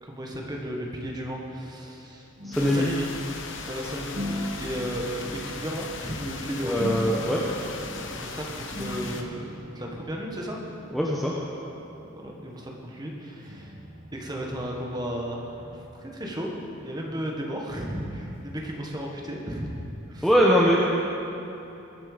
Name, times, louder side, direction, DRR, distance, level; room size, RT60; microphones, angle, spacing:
voice 1, 0.0-2.3 2.6-3.1 3.7-6.9 8.1-9.5 9.7-10.6 12.0-13.7 14.1-16.5 16.8-19.7 20.1-20.3, equal, 20° right, -1 dB, 1.6 m, -34 dB
sound 1, 1.6-2.0 2.4-3.7 4.1-6.1 6.8-8.2 8.7-12.7 13.4-19.9, equal, 40° right, 1.6 m, -41 dB
voice 2, 2.4-2.8 6.6-7.4 10.9-11.3 20.2-20.8, equal, ahead, -5 dB, 1.0 m, -21 dB
sound 2, 2.5-9.2, left 4 dB, 60° left, 1.1 m, -38 dB
22.0 x 7.6 x 5.1 m, 3.0 s
head